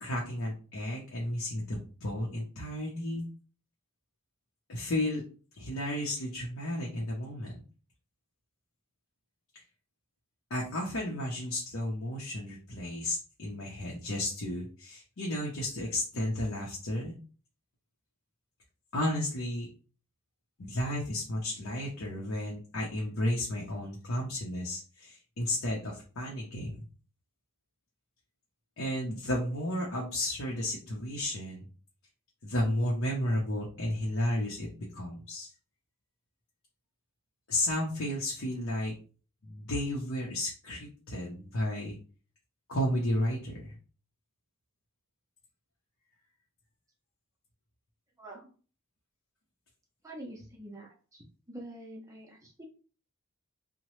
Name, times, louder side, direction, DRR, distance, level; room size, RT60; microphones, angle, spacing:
voice 1, 0.0-3.3 4.7-5.2 5.6-7.6 9.5-9.6 10.5-17.1 18.9-19.7 20.6-26.8 28.8-31.7 32.4-35.5 37.5-38.9 39.4-42.0 42.7-43.8, left 1 dB, 70° left, -3 dB, 0.7 m, -33 dB
voice 2, 48.2-48.5 50.0-52.6, right 1 dB, 15° right, -2 dB, 0.5 m, -46 dB
2.9 x 2.1 x 3.0 m, 0.39 s
head